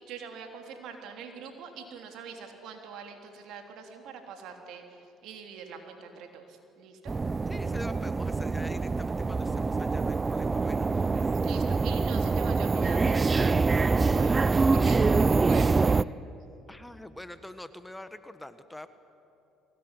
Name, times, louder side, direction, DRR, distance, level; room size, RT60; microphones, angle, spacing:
voice 1, 0.0-7.1 11.3-16.1, right 6 dB, 70° right, 4 dB, 3.4 m, -44 dB
sound 1, 7.1-16.0, right 4 dB, 25° right, 0.5 m, -25 dB
voice 2, 7.5-10.9 16.7-18.9, left 1 dB, 10° left, 11 dB, 1.4 m, -44 dB
22.0 x 18.5 x 9.9 m, 2.8 s
hypercardioid pair, 65°, 0 cm